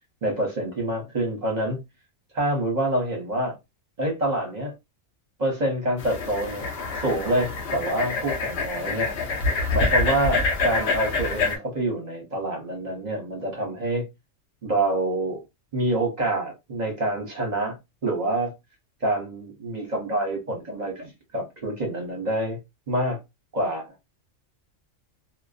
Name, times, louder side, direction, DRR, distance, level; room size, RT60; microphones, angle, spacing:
voice 1, 0.2-1.8 2.3-3.6 4.0-4.7 5.4-6.7 7.0-9.1 9.7-14.1 14.6-15.4 15.7-17.8 18.0-18.5 19.0-22.6 22.9-23.2 23.5-23.9, right 1 dB, 40° right, 0.7 m, -26 dB
sound 1, 6.0-11.6, left 3 dB, 60° left, 0.8 m, -26 dB
2.5 x 2.1 x 2.3 m
omnidirectional pair, 1.4 m